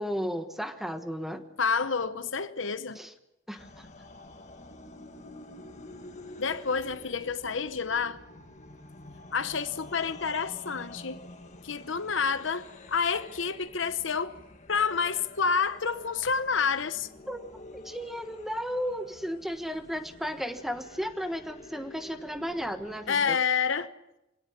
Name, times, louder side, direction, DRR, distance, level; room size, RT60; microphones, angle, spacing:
voice 1, 0.0-1.4 2.9-3.1 3.5-3.9 17.3-17.4 17.7-23.4, equal, ahead, 1.3 m, -34 dB
voice 2, 1.6-3.0 6.4-8.2 9.3-11.2 11.6-14.4 14.7-17.1 23.1-23.9, left 5 dB, 65° left, 0.9 m, -29 dB
sound 1, 3.6-23.3, left 2 dB, 35° left, 1.7 m, -49 dB
26.0 x 17.5 x 7.3 m
head